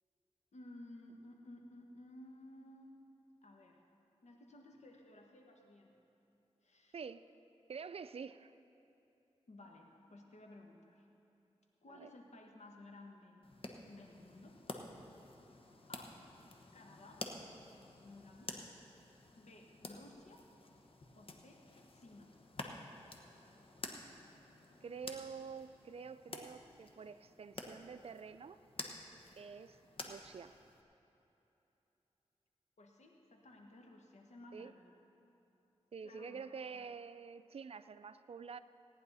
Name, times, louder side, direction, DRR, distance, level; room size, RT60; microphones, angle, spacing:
voice 1, 0.5-3.0 3.4-3.8 4.2-5.9 6.6-7.1 9.5-11.0 11.8-13.5 13.9-14.6 15.9-16.1 16.7-17.2 18.0-18.5 19.4-20.4 21.1-21.6 21.9-22.3 30.0-30.1 32.8-35.0 36.0-36.8, left 1 dB, 80° left, 1 dB, 1.5 m, -56 dB
voice 2, 7.7-8.5 11.9-12.1 24.8-28.6 29.4-29.8 30.0-30.5 34.5-34.7 35.9-38.6, right 6 dB, 60° right, 13 dB, 0.4 m, -48 dB
sound 1, 13.4-30.8, left 2 dB, 55° left, 1.1 m, -51 dB
17.5 x 9.8 x 4.1 m, 3.0 s
cardioid pair, 60°, 11 cm